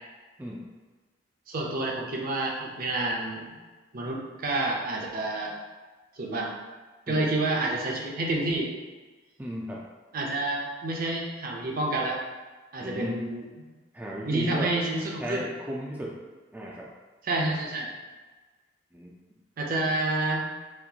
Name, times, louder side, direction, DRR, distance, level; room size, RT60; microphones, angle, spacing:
voice 1, 0.4-0.7 7.1-7.3 9.4-9.8 12.8-13.3 13.9-14.8 15.2-16.2 16.5-16.9 18.9-19.1 19.7-19.9, equal, 10° right, -3 dB, 0.3 m, -35 dB
voice 2, 1.5-3.5 3.9-5.5 6.2-6.5 7.1-8.7 10.1-12.2 12.7-13.4 14.3-15.4 17.2-17.9 19.6-20.4, right 2 dB, 50° right, -1 dB, 0.6 m, -29 dB
4.2 x 2.3 x 2.8 m, 1.3 s
head